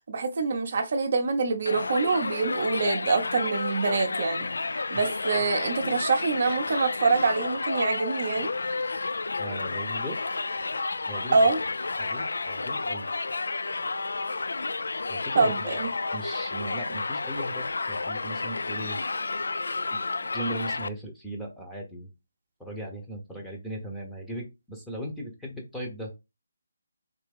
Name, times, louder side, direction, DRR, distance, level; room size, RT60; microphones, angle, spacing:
voice 1, 0.1-4.5 4.9-8.5 11.3-11.6 15.3-15.9, right 4 dB, 45° right, 0.6 m, -25 dB
Crowd, 1.7-20.9, left 3 dB, 80° left, 0.3 m, -31 dB
voice 2, 9.4-10.2 11.1-11.4 12.0-13.1 15.1-15.8 16.1-19.0 19.9-22.1 22.6-26.1, right 1 dB, ahead, 0.8 m, -38 dB
3.3 x 2.9 x 3.4 m
hypercardioid pair, 170°, 0 cm